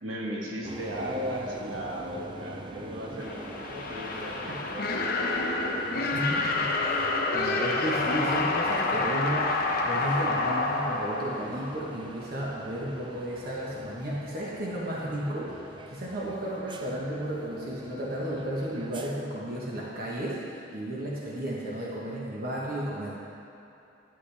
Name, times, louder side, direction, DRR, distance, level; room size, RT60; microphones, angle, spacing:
voice 1, 0.0-6.5, equal, 75° right, -3 dB, 1.5 m, -37 dB
sound 1, 0.6-19.1, right 2 dB, 25° right, 0.4 m, -45 dB
sound 2, 3.2-12.1, left 3 dB, 50° left, 0.9 m, -28 dB
voice 2, 6.1-6.9 7.3-23.1, right 1 dB, 50° right, -5 dB, 1.2 m, -33 dB
11.0 x 9.8 x 3.4 m, 2.8 s
head